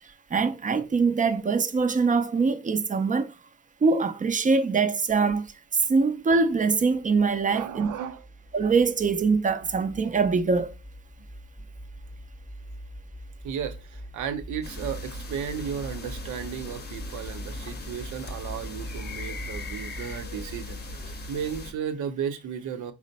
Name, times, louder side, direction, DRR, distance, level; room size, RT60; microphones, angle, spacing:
voice 1, 0.3-3.3 3.8-5.5 5.7-7.9 8.5-10.7, right 4 dB, 25° right, 0.5 m, -23 dB
sound 1, 6.6-21.8, equal, 5° right, 0.8 m, -42 dB
voice 2, 7.5-8.2 13.4-22.9, right 8 dB, 75° right, 0.7 m, -34 dB
sound 2, 14.6-21.7, left 3 dB, 35° left, 0.7 m, -40 dB
4.2 x 2.0 x 4.0 m
cardioid pair, 90°, 30 cm